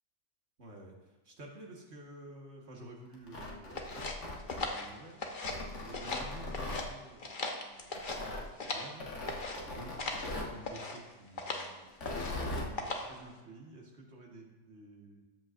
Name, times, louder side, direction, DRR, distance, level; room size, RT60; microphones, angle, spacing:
voice 1, 0.6-5.5 5.8-9.1 9.6-11.9 12.2-15.2, right 1 dB, 65° right, -1 dB, 1.9 m, -51 dB
Tearing, 3.1-4.9 5.4-6.9 7.9-8.5 9.0-10.6 11.9-12.7, left 2 dB, 80° left, 1.8 m, -40 dB
sound 1, 3.8-5.6 5.9-6.9 7.2-8.9 9.3-9.6 10.0-10.3 10.6-11.0 11.4-11.7 12.0-12.4 12.8-13.2, left 3 dB, 45° left, 1.1 m, -38 dB
13.5 x 8.1 x 2.6 m, 1.2 s
omnidirectional pair, 1.2 m